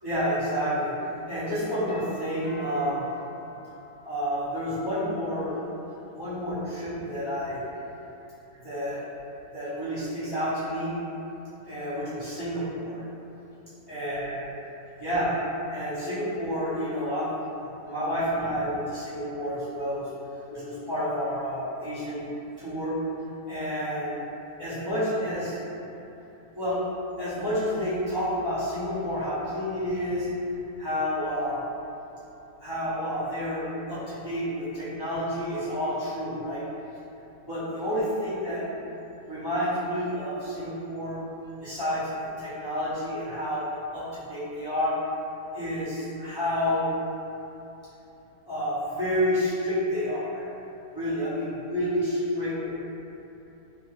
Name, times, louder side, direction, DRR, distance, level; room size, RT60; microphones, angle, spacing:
voice 1, 0.0-1.0 1.3-3.1 4.0-5.6 6.1-7.6 8.6-9.0 9.5-10.9 11.7-13.0 13.9-14.4 15.0-15.3 15.7-20.1 20.5-22.2 22.6-23.0 23.5-24.2 24.6-25.6 26.5-26.8 27.2-30.3 30.8-31.6 32.6-36.6 37.4-38.6 39.3-41.2 41.6-42.1 42.4-43.6 43.9-44.9 45.5-46.9 48.5-50.4 50.9-52.8, equal, 30° right, -15 dB, 0.5 m, -29 dB
Doorbell, 1.9-4.7, left 2 dB, 20° left, 0.6 m, -47 dB
2.8 x 2.1 x 3.0 m, 3.0 s
omnidirectional pair, 1.6 m